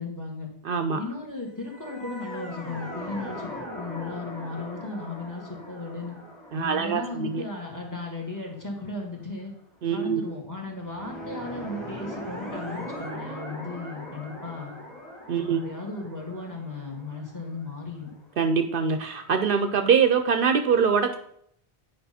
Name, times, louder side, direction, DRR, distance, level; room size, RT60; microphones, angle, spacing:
voice 1, 0.0-0.5 0.9-6.2 6.5-9.5 9.9-14.8 15.4-18.1, left 3 dB, 20° left, 0 dB, 1.7 m, -36 dB
voice 2, 0.6-1.0 6.5-7.4 9.8-10.3 15.3-15.6 18.4-21.2, right 6 dB, 65° right, 7 dB, 0.7 m, -23 dB
sound 1, 1.6-8.9 10.7-18.5, equal, ahead, 1.9 m, -40 dB
9.3 x 5.1 x 4.2 m, 0.70 s
omnidirectional pair, 1.0 m